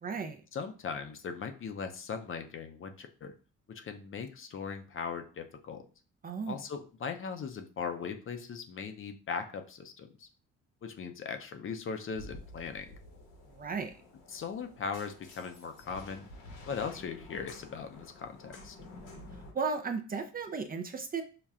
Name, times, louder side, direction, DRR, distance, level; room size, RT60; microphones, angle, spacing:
voice 1, 0.0-0.4 6.2-6.6 13.5-13.9 19.5-21.2, right 5 dB, 30° right, 5 dB, 0.4 m, -35 dB
voice 2, 0.5-3.3 3.7-5.8 6.5-10.3 10.8-12.9 14.3-16.3 16.7-18.8, left 6 dB, 45° left, 6 dB, 0.6 m, -39 dB
sound 1, 12.1-19.5, left 2 dB, 80° left, 1.2 m, -50 dB
5.7 x 2.2 x 2.4 m, 0.37 s
cardioid pair, 90°, 30 cm